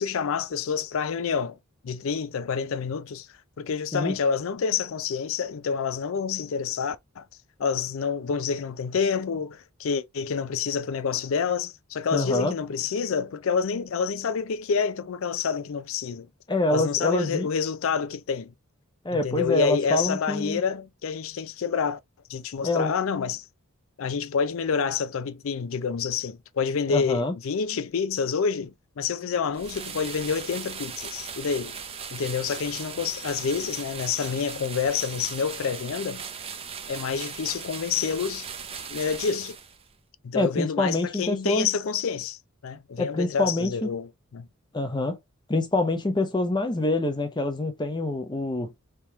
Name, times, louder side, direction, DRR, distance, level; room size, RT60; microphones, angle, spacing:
voice 1, 0.0-1.6 1.8-3.3 3.6-7.2 7.6-16.3 16.7-18.5 19.1-22.0 22.3-23.4 24.0-31.8 32.1-36.2 36.9-38.5 38.9-39.6 40.2-44.5, left 6 dB, 65° left, 0.4 m, -28 dB
voice 2, 12.1-12.5 16.5-17.5 19.0-20.6 22.6-22.9 26.9-27.3 40.3-41.7 43.0-43.9 44.7-45.2 45.5-48.7, left 2 dB, 20° left, 0.7 m, -26 dB
sound 1, 29.5-39.9, right 6 dB, 25° right, 0.5 m, -38 dB
3.5 x 2.9 x 3.4 m
head